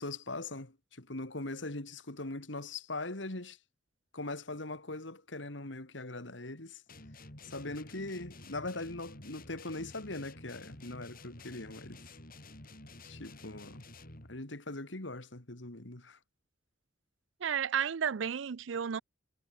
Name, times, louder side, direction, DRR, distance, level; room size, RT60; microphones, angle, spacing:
voice 1, 0.0-3.6 4.1-6.8 7.4-12.0 13.0-13.9 14.3-16.2, left 2 dB, 75° left, 2.8 m, -41 dB
sound 1, 6.9-14.4, left 2 dB, 50° left, 7.4 m, -51 dB
voice 2, 17.4-19.0, right 8 dB, 80° right, 0.5 m, -32 dB
head